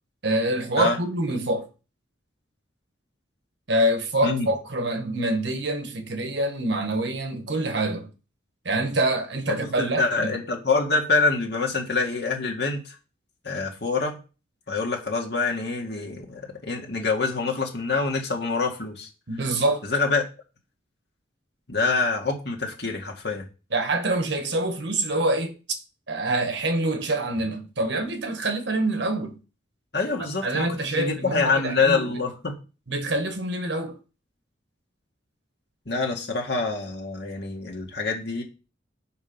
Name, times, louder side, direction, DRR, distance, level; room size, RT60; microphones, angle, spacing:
voice 1, 0.2-1.7 3.7-8.1 8.6-10.4 19.3-19.8 23.7-25.6 26.1-29.4 30.4-32.1 32.9-34.0, right 1 dB, 70° right, 1.4 m, -26 dB
voice 2, 9.5-12.8 13.4-14.2 14.7-19.1 19.8-20.2 21.7-23.4 29.9-32.6 35.9-38.4, left 4 dB, 60° left, 2.0 m, -26 dB
7.5 x 5.4 x 5.3 m
head